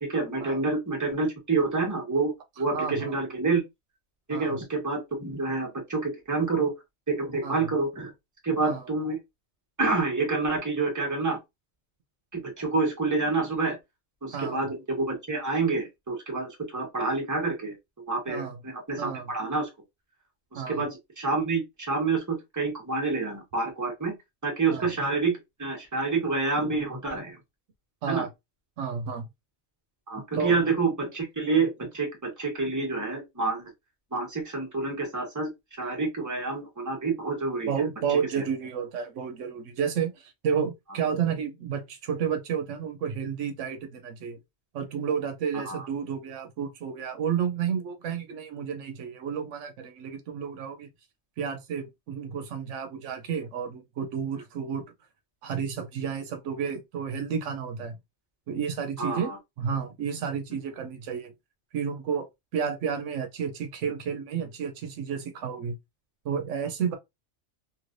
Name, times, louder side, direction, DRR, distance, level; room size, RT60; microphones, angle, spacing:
voice 1, 0.0-3.6 4.3-6.7 7.1-8.1 8.4-9.2 9.8-11.4 12.3-13.8 14.2-17.7 18.1-19.7 20.5-24.1 24.4-27.4 28.1-28.3 30.1-33.7 34.1-35.5 35.8-37.7 38.4-38.5 45.6-45.8 59.0-59.4, right 3 dB, 15° right, 1.1 m, -28 dB
voice 2, 2.7-3.2 4.3-4.6 7.4-7.7 8.6-8.8 14.3-14.6 18.3-18.6 19.0-19.3 20.6-20.8 24.7-24.9 28.0-28.3 28.8-29.3 30.3-30.6 37.7-44.4 44.7-50.9 51.4-54.8 55.4-58.0 58.5-61.3 61.7-65.8 66.2-67.0, right 7 dB, 85° right, 1.0 m, -31 dB
3.1 x 2.7 x 2.5 m
omnidirectional pair, 1.2 m